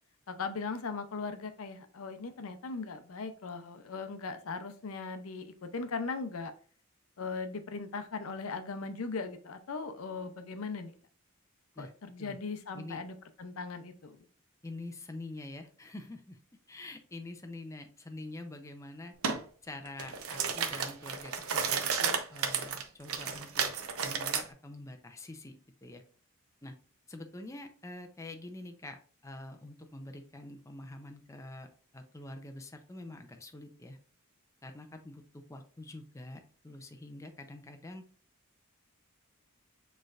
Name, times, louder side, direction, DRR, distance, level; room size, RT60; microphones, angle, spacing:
voice 1, 0.3-6.5 7.2-10.9 11.8-14.2, left 4 dB, 75° left, 10 dB, 0.6 m, -39 dB
voice 2, 14.6-16.4 16.7-19.1 19.6-23.6 24.0-26.0 26.6-26.7 27.1-34.0 34.6-38.0, left 2 dB, 15° left, 5 dB, 0.5 m, -46 dB
sound 1, 19.2-19.4 19.9-24.4, right 6 dB, 85° right, 0.6 m, -32 dB
6.5 x 3.2 x 2.4 m, 0.43 s
head